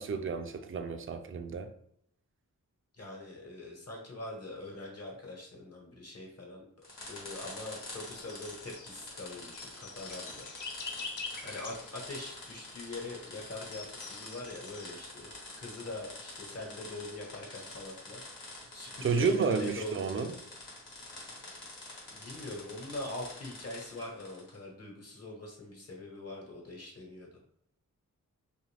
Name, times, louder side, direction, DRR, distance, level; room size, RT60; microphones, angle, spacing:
voice 1, 0.0-1.7 19.0-20.3, right 5 dB, 40° right, 0.4 m, -31 dB
voice 2, 2.9-6.7 7.1-10.5 11.4-15.3 15.6-18.2 18.7-20.4 22.1-27.3, left 2 dB, 50° left, 1.1 m, -43 dB
sound 1, 6.8-24.6, left 2 dB, 80° left, 1.1 m, -47 dB
sound 2, 7.1-17.8, left 4 dB, 65° left, 0.6 m, -48 dB
2.6 x 2.4 x 3.3 m
wide cardioid pair, 75°, 32 cm